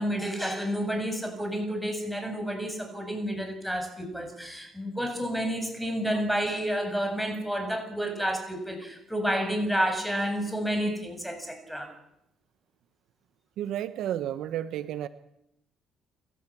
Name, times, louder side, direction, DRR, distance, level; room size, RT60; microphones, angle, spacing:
voice 1, 0.0-11.9, equal, ahead, 6 dB, 7.3 m, -30 dB
voice 2, 13.6-15.1, right 11 dB, 75° right, 12 dB, 1.1 m, -32 dB
30.0 x 13.5 x 8.6 m, 0.81 s
cardioid pair, 95°, 0 cm